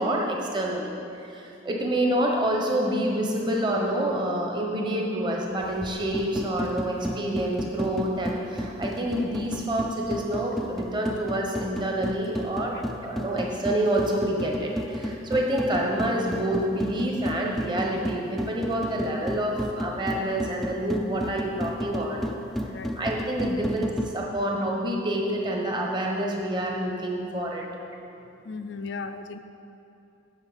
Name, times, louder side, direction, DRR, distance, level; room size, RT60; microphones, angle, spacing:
voice 1, 0.0-12.8 13.0-22.3 22.9-27.7, right 1 dB, 20° right, -1 dB, 1.2 m, -27 dB
sound 1, 5.6-24.2, equal, ahead, 0.4 m, -33 dB
voice 2, 22.6-23.0 28.4-29.4, left 4 dB, 60° left, 9 dB, 0.5 m, -36 dB
7.9 x 6.6 x 8.1 m, 2.8 s
head